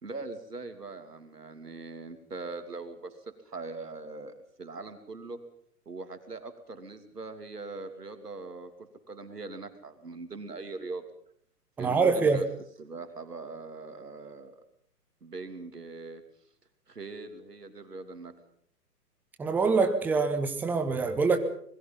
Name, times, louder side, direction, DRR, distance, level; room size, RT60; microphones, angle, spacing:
voice 1, 0.0-3.2 3.4-5.4 5.8-11.0 11.8-12.5 12.8-14.6 15.2-16.2 16.9-18.3, right 3 dB, 75° right, 8 dB, 3.1 m, -41 dB
voice 2, 11.8-12.4 19.4-21.4, right 4 dB, 5° right, 8 dB, 0.8 m, -25 dB
26.0 x 21.0 x 5.5 m, 0.63 s
figure-of-eight pair, 120°, 47 cm